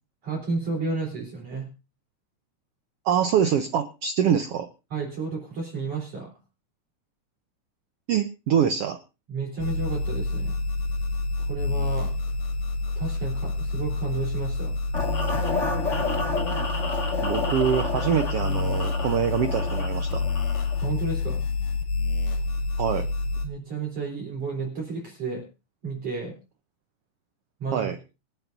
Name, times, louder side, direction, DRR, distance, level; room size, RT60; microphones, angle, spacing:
voice 1, 0.2-1.7 4.9-6.4 9.3-10.6 11.4-12.1 13.0-14.7 20.8-21.4 23.4-25.4 25.8-26.4 27.6-27.9, right 4 dB, 50° right, -2 dB, 4.7 m, -32 dB
voice 2, 3.0-4.7 8.1-9.0 17.2-20.2 22.8-23.1 27.7-28.0, right 8 dB, 75° right, 8 dB, 1.4 m, -24 dB
sound 1, 9.6-23.5, left 3 dB, 85° left, 3.8 m, -28 dB
sound 2, 14.9-20.9, left 3 dB, 30° left, 1.7 m, -30 dB
26.5 x 9.1 x 2.6 m, 0.29 s
omnidirectional pair, 3.6 m